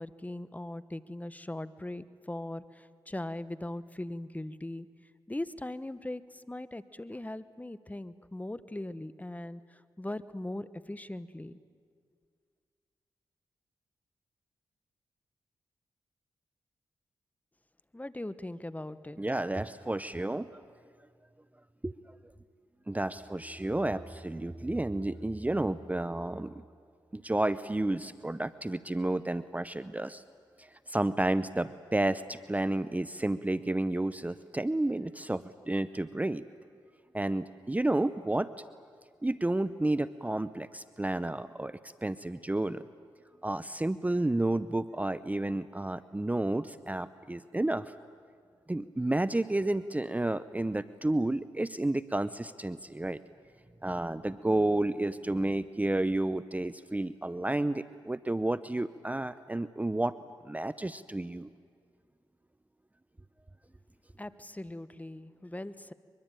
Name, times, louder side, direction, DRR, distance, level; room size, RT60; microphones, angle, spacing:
voice 1, 0.0-4.9 5.3-11.6 17.9-19.2 64.2-65.9, left 1 dB, 15° left, 15 dB, 1.1 m, -40 dB
voice 2, 19.2-20.6 21.8-22.2 22.9-26.6 27.1-30.2 30.6-36.4 37.1-38.5 39.2-42.8 43.4-47.9 48.7-53.2 53.8-60.2 60.4-61.5, right 1 dB, 15° right, 15 dB, 0.7 m, -31 dB
23.5 x 22.5 x 9.1 m, 2.1 s
supercardioid pair, 45°, 10 cm